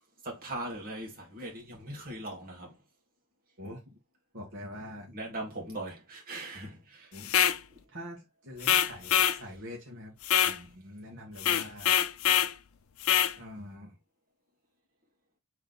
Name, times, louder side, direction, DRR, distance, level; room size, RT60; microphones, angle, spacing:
voice 1, 0.2-2.8 5.1-7.1, right 1 dB, 45° right, 1.7 m, -40 dB
voice 2, 3.6-4.0 4.3-5.2 7.1-7.4 7.9-10.1 10.4-11.9 13.4-14.0, equal, 60° right, 1.4 m, -44 dB
sound 1, 7.2-7.6 8.6-9.4 10.2-10.6 11.4-12.5 13.0-13.3, left 10 dB, 70° left, 0.4 m, -24 dB
3.5 x 3.2 x 3.8 m
head